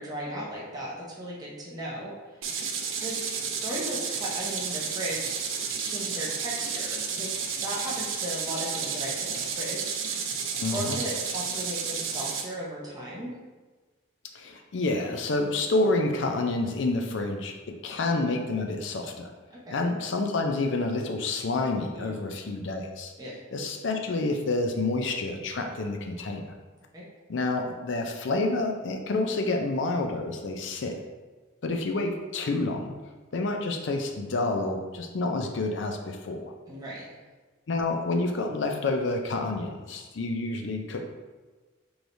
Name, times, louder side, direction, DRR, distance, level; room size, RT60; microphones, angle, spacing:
voice 1, 0.0-2.1 3.0-5.4 5.8-7.4 7.6-10.0 10.7-13.3 19.5-19.8 21.9-22.2 23.2-23.4 26.9-27.1 36.7-37.0, equal, 20° right, -5 dB, 0.8 m, -36 dB
sound 1, 2.4-12.4, right 6 dB, 80° right, 0.5 m, -31 dB
voice 2, 10.6-11.0 14.3-19.3 19.7-23.1 23.5-26.5 27.3-31.0 31.6-32.9 33.3-36.5 37.7-41.1, left 2 dB, 65° left, 4 dB, 0.5 m, -28 dB
4.8 x 3.1 x 2.6 m, 1.3 s
head